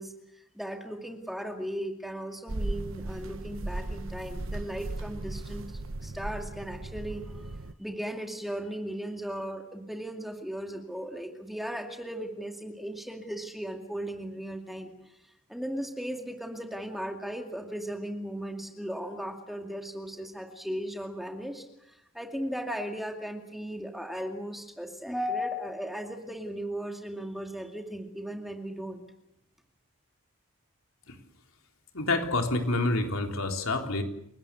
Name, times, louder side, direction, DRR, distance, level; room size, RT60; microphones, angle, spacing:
voice 1, 0.0-5.7 6.0-7.4 7.8-14.9 15.5-29.0, equal, ahead, 3 dB, 2.4 m, -36 dB
sound 1, 2.5-7.7, right 2 dB, 65° right, 1.0 m, -36 dB
voice 2, 31.9-34.0, left 2 dB, 70° left, 4 dB, 3.7 m, -28 dB
29.5 x 18.5 x 8.4 m, 0.80 s
head